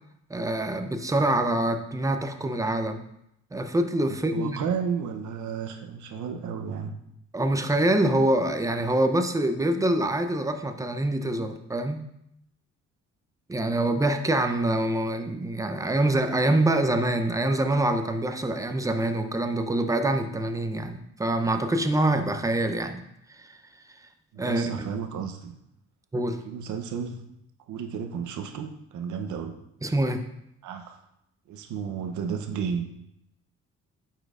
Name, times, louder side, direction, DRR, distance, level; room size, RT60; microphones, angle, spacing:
voice 1, 0.3-3.0 3.5-4.6 7.3-12.0 13.5-23.0 23.3-23.6 24.4-24.9 26.1-26.4 29.8-30.2, right 1 dB, 10° right, 7 dB, 0.5 m, -25 dB
voice 2, 4.1-7.0 24.3-25.6 26.4-27.2 27.7-29.6 30.6-31.0 31.5-33.0, right 6 dB, 75° right, 6 dB, 0.7 m, -33 dB
8.9 x 4.4 x 2.4 m, 0.79 s
cardioid pair, 90°, 30 cm